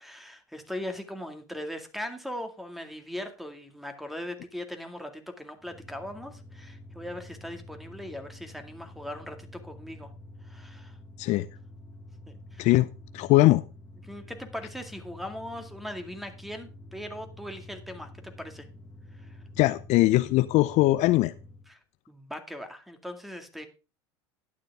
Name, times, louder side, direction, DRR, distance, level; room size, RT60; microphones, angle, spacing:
voice 1, 0.0-10.1 10.4-11.0 12.3-12.7 14.0-18.7 19.1-19.4 21.7-21.8 22.1-23.7, left 1 dB, ahead, 6 dB, 2.1 m, -39 dB
sound 1, 5.6-21.7, left 1 dB, 15° left, 2.5 m, -48 dB
voice 2, 13.1-13.6 19.6-21.3, left 18 dB, 50° left, 14 dB, 0.6 m, -21 dB
11.5 x 9.7 x 3.6 m, 0.32 s
hypercardioid pair, 90°, 15 cm